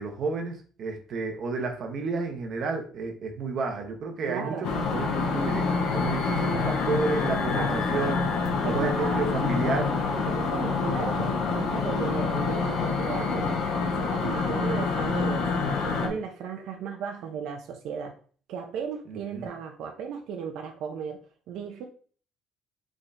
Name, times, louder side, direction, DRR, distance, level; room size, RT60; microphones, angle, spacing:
voice 1, 0.0-8.3 8.6-9.9 19.1-19.5, right 4 dB, 45° right, 0.8 m, -31 dB
voice 2, 4.2-4.6 7.5-7.8 8.6-13.7 14.0-15.5 15.8-18.2 18.5-21.2 21.5-21.8, right 6 dB, 70° right, 0.5 m, -35 dB
sound 1, 4.6-16.1, left 4 dB, 80° left, 1.0 m, -27 dB
4.4 x 3.6 x 2.5 m
cardioid pair, 160°, 0 cm